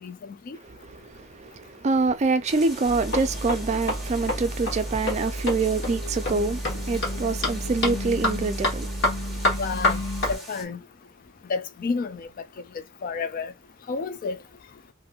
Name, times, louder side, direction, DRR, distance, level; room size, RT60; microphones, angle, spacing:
voice 1, 0.0-0.6 9.6-10.0 10.3-10.8 11.5-12.3 13.0-13.5 13.9-14.4, left 4 dB, 45° left, 0.3 m, -30 dB
voice 2, 0.7-9.5, right 3 dB, 35° right, 0.4 m, -26 dB
sound 1, 2.4-10.6, right 1 dB, ahead, 0.9 m, -43 dB
sound 2, 2.8-10.3, left 1 dB, 60° left, 1.1 m, -28 dB
2.9 x 2.6 x 2.4 m
head